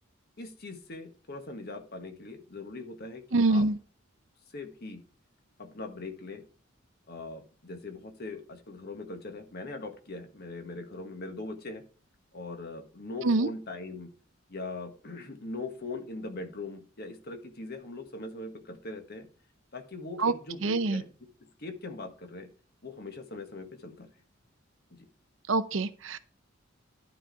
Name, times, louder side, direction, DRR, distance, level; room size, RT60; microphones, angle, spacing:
voice 1, 0.4-3.7 4.5-5.0 5.6-6.4 7.1-11.8 12.3-14.1 14.5-19.3 19.7-21.1 21.6-22.5 22.8-24.1 24.9-25.1, left 2 dB, 50° left, 1.5 m, -41 dB
voice 2, 3.3-3.8 13.2-13.5 20.2-20.3 20.6-21.0 25.5-26.2, right 3 dB, 70° right, 0.7 m, -25 dB
11.5 x 4.3 x 4.6 m
head